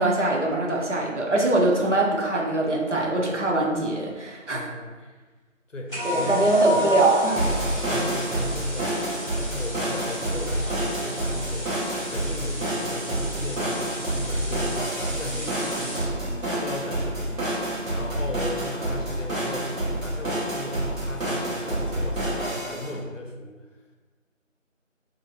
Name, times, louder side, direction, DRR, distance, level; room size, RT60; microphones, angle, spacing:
voice 1, 0.0-4.6 6.0-7.4, right 2 dB, 65° right, -2 dB, 0.7 m, -22 dB
voice 2, 4.5-4.9 5.7-6.8 7.9-9.0 9.3-16.1 16.4-23.7, left 1 dB, 70° left, 1 dB, 0.6 m, -36 dB
sound 1, 5.9-16.2, equal, 40° right, 1.3 m, -38 dB
sound 2, 6.0-23.0, right 1 dB, 85° right, 1.1 m, -28 dB
2.8 x 2.7 x 2.5 m, 1.3 s
figure-of-eight pair, 180°, 39 cm